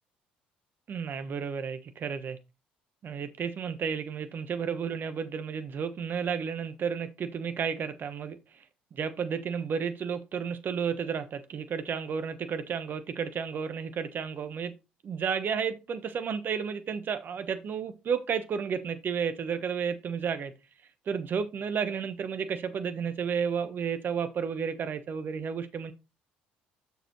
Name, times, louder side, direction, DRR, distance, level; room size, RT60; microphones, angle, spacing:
voice 1, 0.9-2.4 3.0-8.6 8.9-14.7 15.1-20.5 21.1-25.9, right 6 dB, 45° right, 1.2 m, -32 dB
7.0 x 6.6 x 3.1 m
hypercardioid pair, 55°, 4 cm